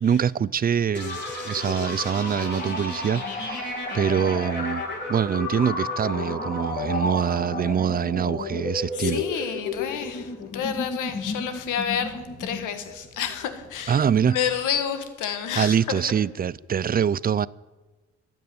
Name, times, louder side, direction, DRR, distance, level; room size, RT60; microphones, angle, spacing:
voice 1, 0.0-4.8 5.1-9.5 13.9-14.4 15.6-17.5, right 8 dB, 30° right, 0.4 m, -24 dB
sound 1, 0.9-14.6, left 3 dB, 35° left, 5.2 m, -32 dB
voice 2, 8.9-14.0 14.3-16.0, left 8 dB, 90° left, 1.7 m, -29 dB
13.0 x 9.1 x 9.5 m
cardioid pair, 90°, 30 cm